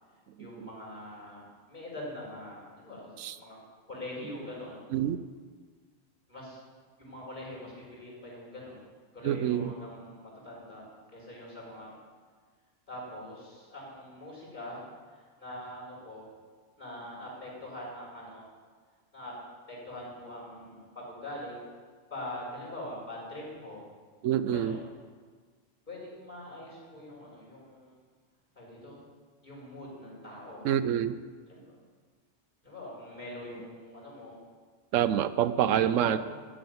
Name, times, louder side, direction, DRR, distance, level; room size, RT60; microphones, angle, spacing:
voice 1, 0.4-3.1 3.4-3.6 3.9-4.8 6.3-6.6 7.0-8.8 9.1-12.0 12.9-16.2 16.8-18.5 19.1-19.3 19.7-21.6 22.1-23.8 24.5-24.8 25.9-28.0 28.5-29.0 29.4-30.7 31.5-31.8 32.6-34.4 35.7-36.2, left 1 dB, 35° left, -5 dB, 4.9 m, -43 dB
voice 2, 9.2-9.7 24.2-24.8 30.6-31.2 34.9-36.2, right 10 dB, 80° right, 13 dB, 0.9 m, -26 dB
13.0 x 6.1 x 9.4 m, 1.5 s
omnidirectional pair, 1.3 m